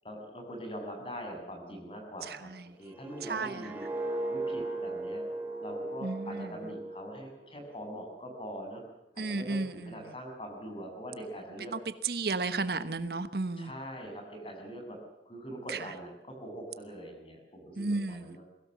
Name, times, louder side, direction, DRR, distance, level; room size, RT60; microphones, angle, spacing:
voice 1, 0.0-2.5 2.8-3.8 4.3-5.2 5.6-8.8 9.1-11.7 13.6-15.0 15.2-18.4, equal, 30° left, 6.5 m, -42 dB
sound 1, 2.9-7.9 8.3-8.6, right 2 dB, 10° right, 2.6 m, -38 dB
voice 2, 6.0-6.4 9.2-9.7 12.0-13.7 17.8-18.4, right 3 dB, 60° right, 1.1 m, -32 dB
22.5 x 17.0 x 7.3 m
head